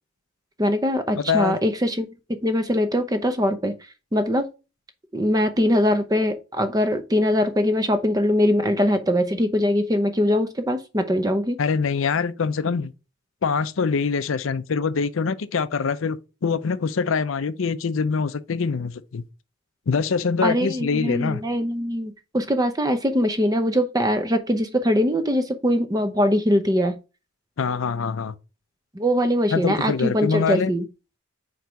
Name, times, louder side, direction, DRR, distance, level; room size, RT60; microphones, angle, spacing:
voice 1, 0.6-2.1 2.4-3.7 4.1-4.5 5.1-11.6 20.4-27.0 28.9-30.8, equal, 20° right, 0.6 m, -22 dB
voice 2, 1.2-1.6 11.6-12.9 13.4-19.2 19.9-21.4 27.6-28.3 29.5-30.7, left 5 dB, 75° left, 0.5 m, -24 dB
4.7 x 4.6 x 5.1 m
head